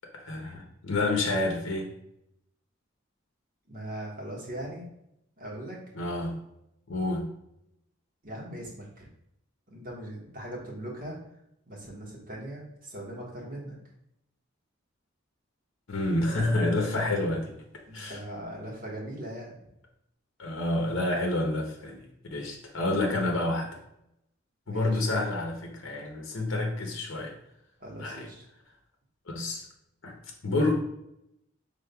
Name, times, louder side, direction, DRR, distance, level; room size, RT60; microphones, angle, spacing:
voice 1, 0.1-1.9 5.9-6.4 6.9-7.3 15.9-17.6 17.9-18.2 20.4-22.0 22.3-23.8 24.7-27.3 28.0-28.3 29.3-29.7 30.0-30.2 30.4-30.7, left 2 dB, 70° left, 1 dB, 0.8 m, -28 dB
voice 2, 3.7-4.8 5.4-5.8 8.2-9.1 9.7-11.2 11.7-13.8 17.9-19.6 24.7-25.2 27.8-28.4, right 1 dB, 45° right, -4 dB, 1.4 m, -40 dB
5.2 x 3.7 x 2.3 m, 0.79 s
head